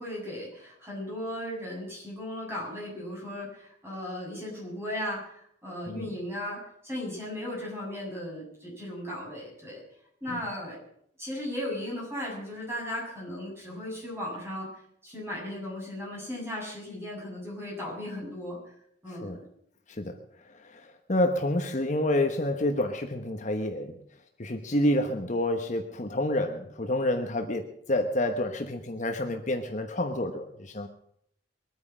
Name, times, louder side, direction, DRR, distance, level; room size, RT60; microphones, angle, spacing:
voice 1, 0.0-9.8 10.2-10.8 11.2-14.7 15.0-18.6 19.0-19.4, left 1 dB, 15° right, -4 dB, 7.4 m, -36 dB
voice 2, 20.5-24.0 24.4-30.9, left 1 dB, 40° left, 5 dB, 1.1 m, -28 dB
22.5 x 9.4 x 6.2 m, 0.69 s
head